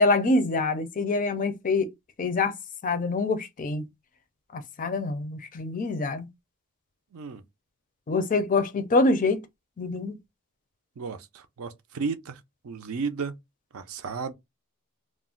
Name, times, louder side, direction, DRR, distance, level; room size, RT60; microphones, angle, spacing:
voice 1, 0.0-1.9 2.2-2.5 2.8-3.9 4.5-6.3 8.1-9.4 9.8-10.2, left 3 dB, 35° left, 0.4 m, -25 dB
voice 2, 7.1-7.4 11.0-13.3 13.7-14.3, right 5 dB, 65° right, 0.5 m, -34 dB
2.4 x 2.0 x 3.7 m
head